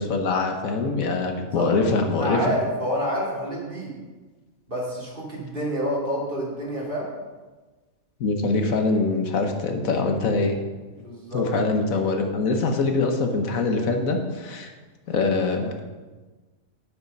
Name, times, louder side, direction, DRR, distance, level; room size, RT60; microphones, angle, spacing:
voice 1, 0.0-2.5 8.2-10.6 11.3-14.7 15.1-15.8, left 3 dB, 80° left, 5 dB, 1.5 m, -23 dB
voice 2, 2.1-3.9 4.7-7.1 11.0-11.4, equal, 40° right, -4 dB, 2.9 m, -28 dB
8.7 x 8.2 x 5.3 m, 1.3 s
omnidirectional pair, 1.4 m